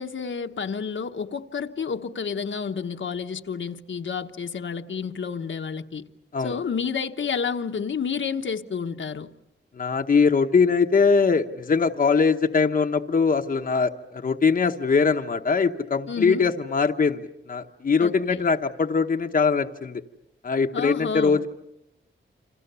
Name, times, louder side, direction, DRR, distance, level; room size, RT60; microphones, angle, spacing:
voice 1, 0.0-6.0 6.4-9.3 16.1-16.5 18.0-18.4 20.7-21.4, left 6 dB, 70° left, 1.2 m, -30 dB
voice 2, 9.7-20.0 20.4-21.5, left 5 dB, 45° left, 1.0 m, -22 dB
29.5 x 26.5 x 6.9 m
wide cardioid pair, 145°, 20 cm